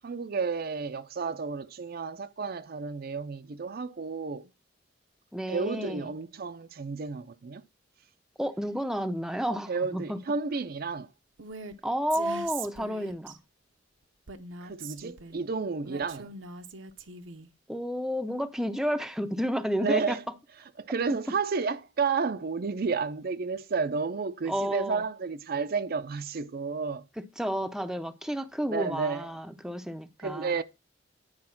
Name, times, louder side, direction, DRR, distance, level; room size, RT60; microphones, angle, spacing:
voice 1, 0.0-4.5 5.5-7.6 9.7-11.1 14.6-16.3 19.8-20.2 20.8-27.0 28.7-29.3 30.2-30.6, right 5 dB, 50° right, 0.5 m, -31 dB
voice 2, 5.3-6.1 8.4-10.2 11.8-13.4 17.7-20.2 24.5-25.0 27.2-30.6, equal, 5° right, 0.5 m, -31 dB
Female speech woman speaking, 11.4-11.8 12.1-13.4 14.3-15.4 15.9-17.5, right 4 dB, 80° right, 0.8 m, -42 dB
9.8 x 4.7 x 5.7 m
head